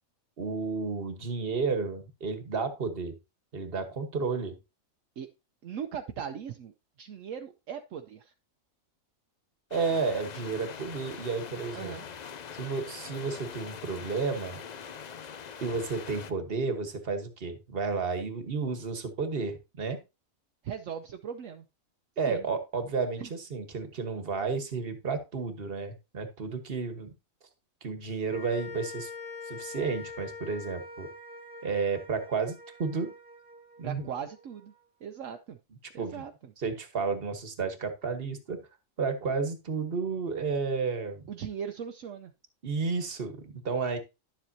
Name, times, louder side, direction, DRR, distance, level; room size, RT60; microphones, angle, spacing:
voice 1, 0.4-3.1 3.5-4.6 9.7-11.9 12.5-14.6 15.6-20.0 22.2-27.1 27.8-29.1 29.4-31.1 31.6-33.1 33.8-34.1 36.0-36.2 36.6-38.6 39.0-41.2 42.6-44.0, right 4 dB, 45° right, 8 dB, 1.5 m, -32 dB
voice 2, 5.6-6.7 7.0-8.3 11.7-12.1 20.6-21.7 22.2-22.5 23.2-23.3 33.8-34.7 35.0-35.6 35.9-36.5 41.3-42.3, right 8 dB, 70° right, 6 dB, 1.0 m, -39 dB
sound 1, 9.7-16.3, left 7 dB, 60° left, 0.4 m, -43 dB
sound 2, 28.3-34.7, left 4 dB, 30° left, 1.5 m, -44 dB
11.5 x 7.5 x 2.7 m, 0.26 s
omnidirectional pair, 1.4 m